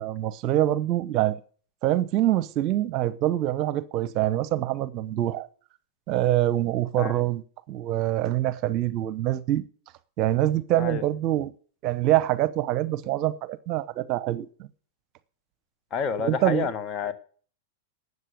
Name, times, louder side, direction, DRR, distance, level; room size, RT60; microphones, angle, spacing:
voice 1, 0.0-1.4 1.8-5.5 6.1-7.4 7.7-9.6 10.2-11.5 11.8-14.5 16.2-16.7, right 14 dB, 45° right, 0.8 m, -25 dB
voice 2, 15.9-17.1, left 6 dB, 35° left, 1.5 m, -29 dB
12.5 x 8.2 x 6.7 m
hypercardioid pair, 100°, 0 cm